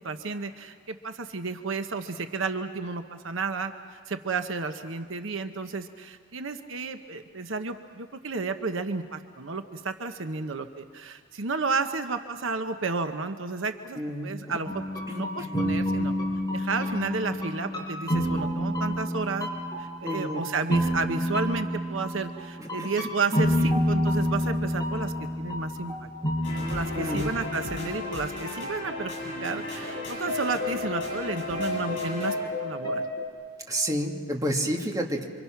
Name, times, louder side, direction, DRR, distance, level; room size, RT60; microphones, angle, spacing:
voice 1, 0.0-3.7 4.1-16.1 16.5-19.5 19.8-26.1 26.7-33.0, right 4 dB, 70° right, 8 dB, 1.0 m, -32 dB
voice 2, 14.0-14.6 15.1-15.6 20.0-20.4 22.6-22.9 23.3-23.7 26.9-27.3 33.7-35.3, equal, 20° right, 1 dB, 1.9 m, -30 dB
sound 1, 14.6-27.8 28.1-28.2 29.6-29.7 29.9-33.3, equal, 20° left, 4.6 m, -29 dB
sound 2, 26.4-32.3, left 2 dB, 65° left, 7.6 m, -35 dB
27.5 x 26.0 x 5.9 m, 2.1 s
head